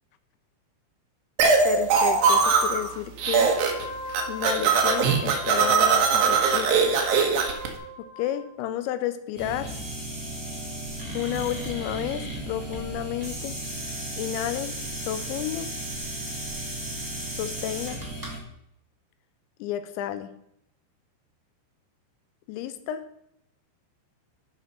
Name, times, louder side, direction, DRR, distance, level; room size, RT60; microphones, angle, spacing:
sound 1, 1.4-2.9 3.2-3.8 4.1-7.7, right 5 dB, 65° right, 2.5 m, -21 dB
voice 1, 1.6-3.5 4.3-7.1 8.0-9.7 11.1-13.5 14.2-14.7 15.0-15.7 17.3-18.0 19.6-20.3 22.5-23.0, left 11 dB, 85° left, 11 dB, 3.0 m, -31 dB
Wind instrument woodwind instrument, 3.2-8.5, left 1 dB, 35° left, 2.1 m, -39 dB
sound 2, 9.3-18.4, right 1 dB, 25° right, 0.4 m, -34 dB
12.5 x 4.3 x 5.3 m, 0.77 s
omnidirectional pair, 5.1 m